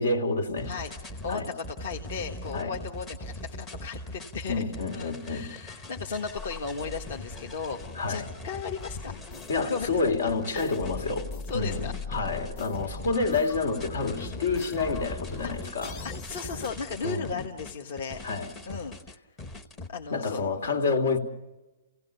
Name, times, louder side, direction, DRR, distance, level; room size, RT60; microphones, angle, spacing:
voice 1, 0.0-0.7 1.3-1.5 2.5-2.7 4.5-5.5 8.0-8.3 9.5-11.3 11.5-15.9 17.0-17.4 18.2-18.5 20.1-21.2, left 3 dB, 75° left, 3.1 m, -28 dB
voice 2, 0.6-4.6 4.9-7.8 8.1-9.2 9.5-10.0 10.5-10.7 11.5-11.9 16.0-18.2 18.7-18.9 19.9-20.4, left 5 dB, 45° left, 1.5 m, -36 dB
sound 1, 0.6-19.9, left 1 dB, 15° left, 0.9 m, -41 dB
sound 2, 6.3-16.7, left 4 dB, 30° left, 1.3 m, -42 dB
29.5 x 17.0 x 6.9 m
hypercardioid pair, 175°, 0 cm